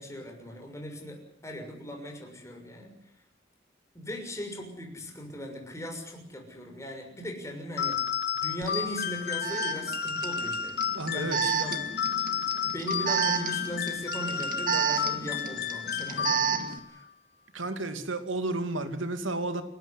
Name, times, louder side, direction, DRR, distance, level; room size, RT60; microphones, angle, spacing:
voice 1, 0.0-2.9 3.9-8.0 8.3-10.8 11.1-11.8 12.6-17.0, equal, 15° left, 3 dB, 6.4 m, -38 dB
sound 1, 7.8-16.8, left 7 dB, 55° left, 2.0 m, -32 dB
Alarm, 8.6-8.7 9.4-16.8, right 7 dB, 45° right, 2.2 m, -31 dB
voice 2, 10.9-11.8 17.5-19.6, right 2 dB, 85° right, 9 dB, 2.6 m, -32 dB
28.5 x 13.0 x 10.0 m, 0.72 s
head